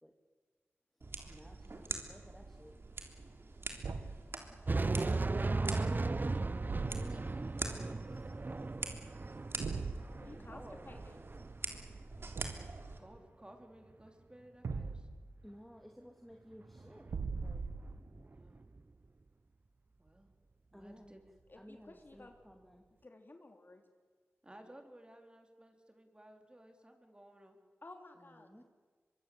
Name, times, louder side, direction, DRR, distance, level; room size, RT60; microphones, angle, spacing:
sound 1, 1.0-13.0, right 3 dB, 55° right, 3.3 m, -46 dB
voice 1, 1.3-2.7 7.0-9.5 10.1-10.3 10.6-11.3 15.4-17.7 20.7-21.2 21.6-22.8 28.4-28.6, equal, 5° left, 3 dB, 2.6 m, -57 dB
Thump thud, 3.8-4.3 6.6-7.4 9.6-10.0 12.3-12.8 14.6-15.3 17.1-18.0, right 4 dB, 85° right, 1.4 m, -40 dB
voice 2, 3.9-4.5 6.3-7.5 10.3-10.8 13.0-15.1 18.3-18.6 20.0-20.3 20.7-21.2 24.4-27.6, right 1 dB, 20° right, 4 dB, 4.2 m, -57 dB
sound 2, 4.7-12.0 12.3-12.6 16.7-18.8, right 3 dB, 40° right, 0.7 m, -37 dB
voice 3, 10.2-11.2 21.5-22.4 23.0-23.8 27.8-28.5, left 2 dB, 45° left, 5 dB, 3.1 m, -54 dB
24.0 x 23.5 x 8.0 m, 1.5 s
cardioid pair, 50°, 5 cm